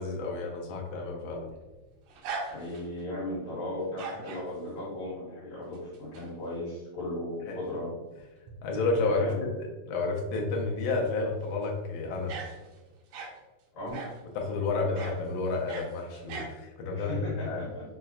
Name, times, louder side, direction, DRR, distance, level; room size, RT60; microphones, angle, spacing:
voice 1, 0.0-1.5 7.5-7.6 8.6-9.3 9.6-12.3 14.4-17.2 17.4-17.6, left 3 dB, 85° left, 0 dB, 2.1 m, -30 dB
sound 1, 1.2-3.0 3.8-4.5 5.7-6.3 6.7-6.8 8.2-8.3 8.5-8.6 11.5-11.7 12.3-13.4 13.9-14.3 15.0-15.2 15.5-16.5, right 4 dB, 80° right, 1.8 m, -40 dB
voice 2, 2.5-7.9 9.0-9.5 13.7-14.0 14.8-14.9 17.0-17.8, left 1 dB, 70° left, -7 dB, 2.5 m, -36 dB
5.6 x 2.1 x 2.4 m, 1.1 s
omnidirectional pair, 3.4 m